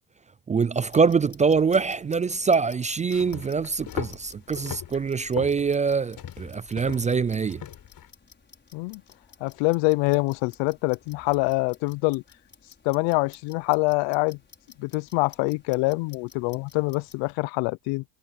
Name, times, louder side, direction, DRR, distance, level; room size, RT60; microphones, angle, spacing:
voice 1, 0.5-7.6, right 5 dB, 20° right, 0.3 m, -24 dB
Clock, 0.8-17.3, left 5 dB, 25° left, 5.9 m, -54 dB
sound 1, 3.0-8.1, left 11 dB, 50° left, 5.0 m, -39 dB
voice 2, 9.4-12.2 12.8-14.4 14.8-18.0, left 26 dB, 80° left, 0.7 m, -25 dB
supercardioid pair, 100°, 43 cm